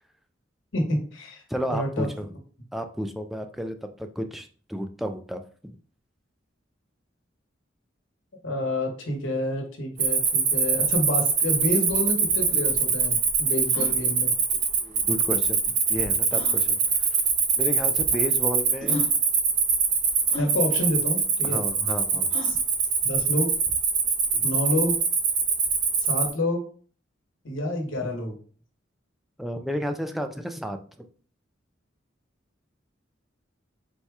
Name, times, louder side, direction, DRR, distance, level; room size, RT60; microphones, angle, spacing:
voice 1, 0.7-1.4 1.7-2.1 8.4-14.3 18.9-19.0 20.4-21.7 22.4-22.6 23.0-23.5 24.4-24.9 26.0-26.6 27.4-28.3, left 1 dB, 85° left, 1 dB, 1.1 m, -28 dB
voice 2, 1.5-2.4 2.7-5.8 14.5-17.1 17.6-19.0 21.4-22.3 24.3-24.5 29.4-30.8, equal, ahead, 5 dB, 0.3 m, -32 dB
Cricket, 10.0-26.3, right 5 dB, 45° right, 0.9 m, -23 dB
sound 1, 13.7-14.0 15.3-15.4 16.3-16.6 17.6-17.7 18.4-18.5 18.8-19.1 20.3-20.5 22.3-22.6, left 3 dB, 30° left, 0.7 m, -36 dB
4.2 x 2.3 x 4.6 m, 0.43 s
head